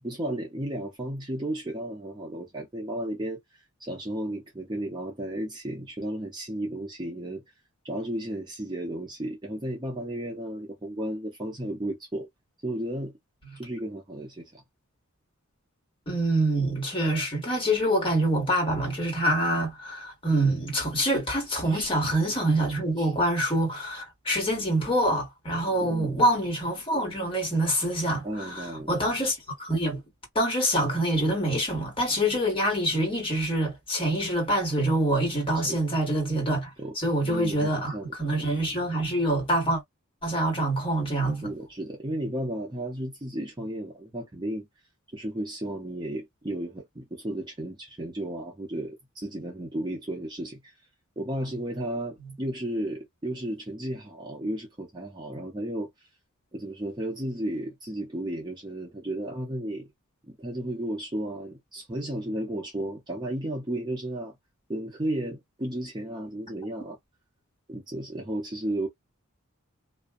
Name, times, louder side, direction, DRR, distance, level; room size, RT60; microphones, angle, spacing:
voice 1, 0.0-3.4 3.8-7.4 7.8-12.3 12.6-13.1 13.6-14.6 21.7-21.9 23.0-23.1 25.7-26.2 28.2-29.0 35.6-35.8 36.8-36.9 37.2-38.1 41.4-44.7 45.1-50.7 51.2-55.9 56.5-59.9 60.3-64.4 64.7-67.0 67.7-68.9, right 1 dB, 20° right, 0.6 m, -33 dB
voice 2, 16.1-30.0 30.3-36.7 37.0-39.8 40.2-41.5, right 1 dB, 25° left, 1.5 m, -26 dB
2.5 x 2.3 x 2.3 m
head